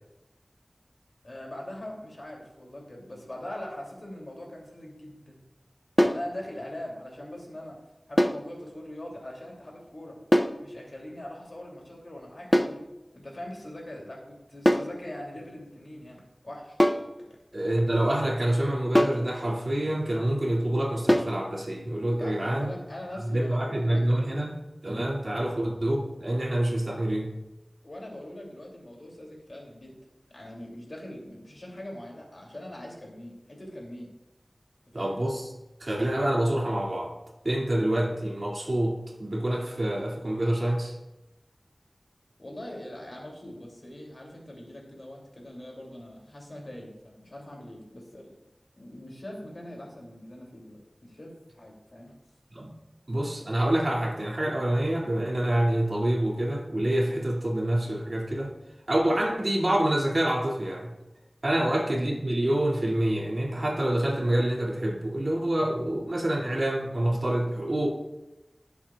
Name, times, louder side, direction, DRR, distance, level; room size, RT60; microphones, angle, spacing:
voice 1, 1.2-5.4 6.0-7.8 8.1-10.2 10.6-12.8 13.1-16.8 22.1-24.3 25.3-25.5 27.8-30.0 30.3-34.1 34.9-35.2 42.4-48.3 48.8-52.1 59.0-59.2 61.6-61.7, left 1 dB, 60° left, -1 dB, 2.7 m, -42 dB
sound 1, 6.0-6.3 8.2-8.5 10.3-10.6 12.5-12.8 14.7-15.0 16.8-17.1 18.9-19.3 21.1-21.4, equal, 20° left, 0.6 m, -22 dB
voice 2, 17.5-22.7 23.1-24.5 24.8-27.3 34.9-35.5 35.8-37.1 37.4-41.0 52.5-52.7 53.1-58.5 58.9-60.9 61.4-67.9, right 1 dB, 60° right, -2 dB, 2.2 m, -27 dB
16.5 x 7.2 x 2.3 m, 0.97 s
wide cardioid pair, 55°, 0 cm